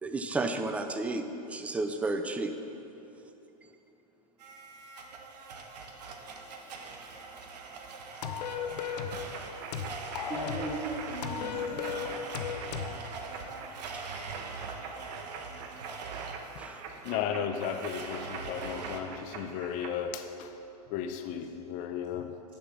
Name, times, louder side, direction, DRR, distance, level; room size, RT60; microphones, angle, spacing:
voice 1, 0.0-2.5 13.9-14.1 16.6-16.9, right 2 dB, 5° right, 7 dB, 0.3 m, -32 dB
Domestic sounds home sounds, 4.4-19.0, right 4 dB, 85° right, 1.1 m, -43 dB
sound 1, 8.2-9.3 9.7-10.8 11.2-13.0, left 7 dB, 85° left, 0.8 m, -35 dB
sound 2, 8.9-19.9, right 5 dB, 45° right, 0.8 m, -45 dB
voice 2, 10.3-12.0 19.1-19.6, right 2 dB, 25° right, -10 dB, 2.2 m, -39 dB
voice 3, 17.0-20.5 20.9-22.3, left 8 dB, 40° left, 7 dB, 0.7 m, -34 dB
7.7 x 7.0 x 5.9 m, 2.9 s
hypercardioid pair, 135°, 21 cm